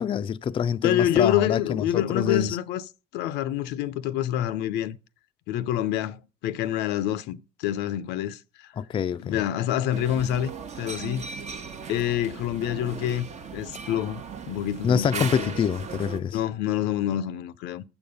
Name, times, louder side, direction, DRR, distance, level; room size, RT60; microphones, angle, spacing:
voice 1, 0.0-2.6 8.8-9.4 14.8-16.4, left 7 dB, 30° left, 0.3 m, -26 dB
voice 2, 0.8-2.8 3.1-5.0 5.5-8.4 9.2-10.5 10.8-11.2 11.9-13.3 13.5-14.2 14.5-15.5 16.3-17.8, left 11 dB, 90° left, 0.5 m, -27 dB
sound 1, 9.9-16.2, right 5 dB, 45° right, 0.8 m, -37 dB
7.0 x 6.9 x 5.4 m
cardioid pair, 110°, 17 cm